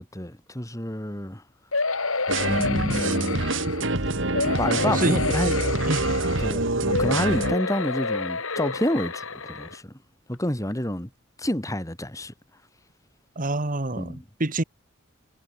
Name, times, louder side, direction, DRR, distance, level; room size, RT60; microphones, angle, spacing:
voice 1, 0.0-1.4 2.5-3.5 4.6-5.6 6.4-9.9 10.3-11.1 11.4-12.3 13.9-14.2, left 1 dB, 15° left, 3.3 m, -29 dB
sound 1, 1.7-3.9 4.3-6.5 6.9-9.8 10.3-10.4 10.7-10.8, left 3 dB, 75° left, 5.0 m, -29 dB
sound 2, 2.3-7.6, right 2 dB, 60° right, 3.3 m, -25 dB
voice 2, 4.8-5.3 5.9-6.1 13.3-14.6, right 2 dB, 40° right, 1.4 m, -27 dB
head